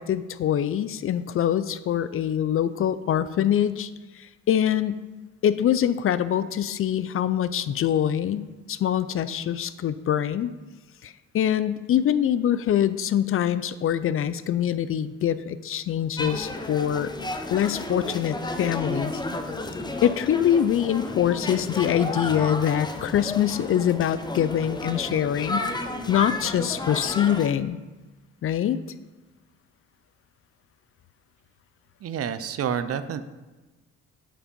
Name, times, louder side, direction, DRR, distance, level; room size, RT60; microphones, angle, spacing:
voice 1, 0.0-3.9 4.2-5.0 5.4-10.5 11.0-17.1 17.5-19.1 20.0-25.7 26.1-27.8 28.4-28.8, left 10 dB, 45° left, 15 dB, 0.4 m, -24 dB
sound 1, 16.2-27.5, left 2 dB, 15° left, 0.7 m, -32 dB
voice 2, 32.0-33.2, right 8 dB, 50° right, 12 dB, 0.6 m, -28 dB
8.7 x 4.9 x 5.3 m, 1.2 s
cardioid pair, 90°, 30 cm